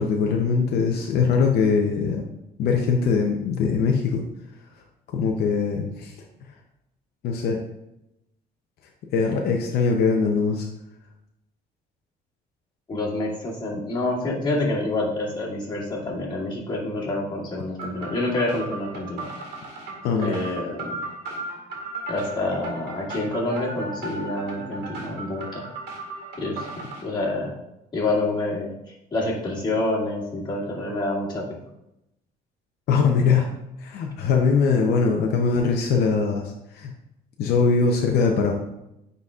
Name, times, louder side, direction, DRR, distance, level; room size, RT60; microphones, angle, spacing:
voice 1, 0.0-2.3 2.6-4.2 5.1-6.1 7.2-7.6 9.1-10.7 20.0-20.3 32.9-33.5 33.8-36.9 37.4-38.5, left 5 dB, 70° left, 1 dB, 0.7 m, -21 dB
voice 2, 12.9-19.3 20.2-21.0 22.1-25.6 26.4-26.7 27.0-27.5 27.9-28.7 29.1-31.4, left 2 dB, 25° left, -5 dB, 2.2 m, -27 dB
sound 1, 17.8-27.0, right 2 dB, 80° right, 1.9 m, -36 dB
9.4 x 4.1 x 2.4 m, 0.86 s
cardioid pair, 110°, 17 cm